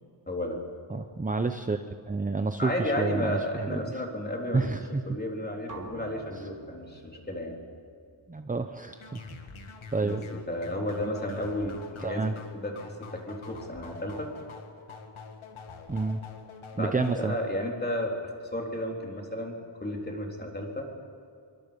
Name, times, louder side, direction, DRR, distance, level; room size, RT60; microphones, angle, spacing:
voice 1, 0.3-0.6 2.6-4.7 5.1-7.6 10.0-12.2 12.5-14.3 14.9-15.1 16.7-19.5 19.8-20.9, left 1 dB, 20° left, 0 dB, 3.7 m, -33 dB
voice 2, 0.9-3.8 4.5-5.0 8.3-9.2 9.9-10.2 12.0-12.3 15.9-16.2 16.8-17.3, right 3 dB, 15° right, 8 dB, 0.7 m, -29 dB
sound 1, 5.7-9.6, right 2 dB, 40° right, 2.8 m, -49 dB
sound 2, 8.9-17.3, left 4 dB, 85° left, 2.2 m, -46 dB
26.0 x 23.5 x 5.3 m, 2.4 s
wide cardioid pair, 160°, 47 cm